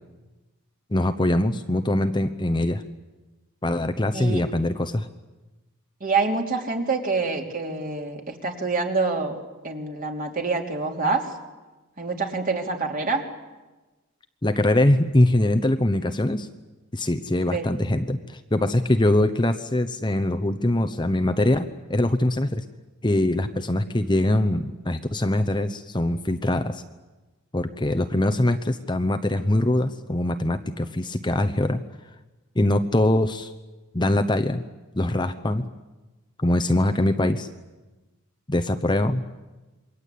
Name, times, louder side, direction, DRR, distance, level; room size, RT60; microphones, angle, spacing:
voice 1, 0.9-2.8 3.6-5.1 14.4-16.5 16.9-22.6 23.0-26.8 27.5-31.8 32.6-33.5 33.9-34.6 34.9-35.7 36.4-37.5 38.5-39.2, left 1 dB, 20° left, 9 dB, 0.9 m, -23 dB
voice 2, 6.0-9.4 9.6-11.2 12.0-13.2 17.5-17.7, right 4 dB, 40° right, 2 dB, 3.2 m, -26 dB
28.0 x 23.0 x 8.5 m, 1.2 s
head